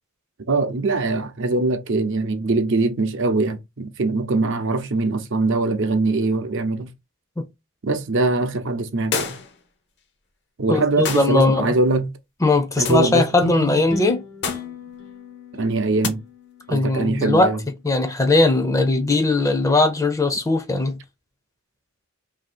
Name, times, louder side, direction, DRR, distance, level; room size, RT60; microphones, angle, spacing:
voice 1, 0.5-6.9 7.8-9.4 10.6-12.1 12.8-13.3 15.5-16.2 16.7-17.6, right 3 dB, 60° right, 0.6 m, -22 dB
sound 1, 9.1-9.6 11.1-11.4 12.8-13.1 14.4-14.8 16.0-16.2, left 5 dB, 50° left, 0.7 m, -27 dB
voice 2, 10.7-11.7 12.4-14.2 16.7-17.5 17.8-21.0, left 2 dB, 15° left, 0.5 m, -19 dB
sound 2, 12.9-17.5, left 1 dB, 75° left, 1.2 m, -34 dB
2.8 x 2.7 x 4.2 m
head